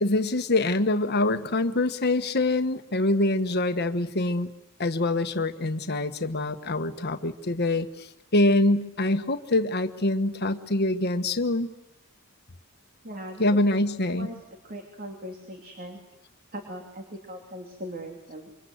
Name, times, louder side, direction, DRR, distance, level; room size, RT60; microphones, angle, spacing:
voice 1, 0.0-4.5 4.8-11.7 13.4-14.3, left 2 dB, 50° left, 9 dB, 1.4 m, -25 dB
voice 2, 13.0-13.4 14.2-14.4 14.6-16.0 16.5-18.5, equal, 45° right, 3 dB, 3.1 m, -39 dB
27.5 x 24.5 x 8.0 m, 0.86 s
head